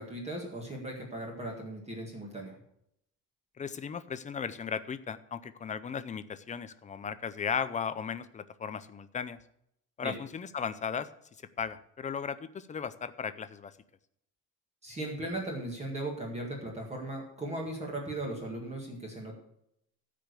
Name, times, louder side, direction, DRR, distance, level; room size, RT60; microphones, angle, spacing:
voice 1, 0.0-2.5 10.0-10.2 14.8-19.3, right 1 dB, 20° right, -1 dB, 2.0 m, -37 dB
voice 2, 3.6-9.4 10.0-11.1 11.6-13.7, left 6 dB, 20° left, 13 dB, 0.5 m, -36 dB
14.0 x 5.1 x 6.7 m, 0.74 s
cardioid pair, 160°, 34 cm